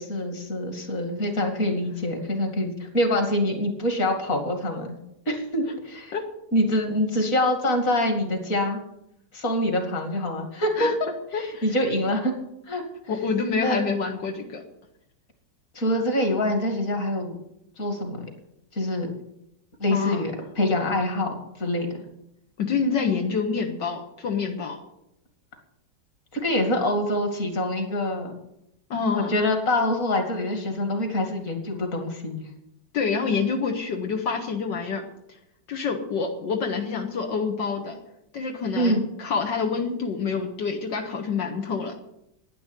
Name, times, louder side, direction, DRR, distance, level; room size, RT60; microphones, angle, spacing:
voice 1, 0.0-4.9 5.3-6.1 6.5-8.8 9.3-10.9 11.3-12.3 12.7-12.8 13.6-13.8 15.7-17.4 17.8-18.3 18.7-19.1 19.8-21.9 26.3-28.3 29.1-32.5 38.7-39.1, left 1 dB, 45° left, 4 dB, 2.9 m, -25 dB
voice 2, 11.3-11.7 13.1-14.6 19.9-20.2 22.6-24.8 28.9-29.3 32.9-35.0 35.7-38.0 38.3-41.9, left 5 dB, 85° left, 2 dB, 2.2 m, -27 dB
11.5 x 10.0 x 9.2 m, 0.81 s
omnidirectional pair, 1.9 m